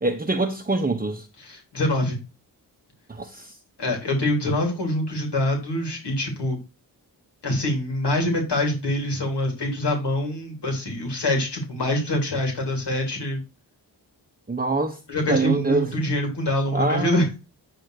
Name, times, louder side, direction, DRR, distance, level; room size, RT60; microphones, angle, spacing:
voice 1, 0.0-1.3 3.1-3.5 14.5-15.0 15.3-16.1 16.7-17.3, right 3 dB, 20° right, 1.0 m, -24 dB
voice 2, 1.4-2.2 3.8-6.6 7.4-13.4 15.1-17.3, left 1 dB, 70° left, 3.4 m, -25 dB
9.8 x 3.6 x 6.6 m
cardioid pair, 60°, 43 cm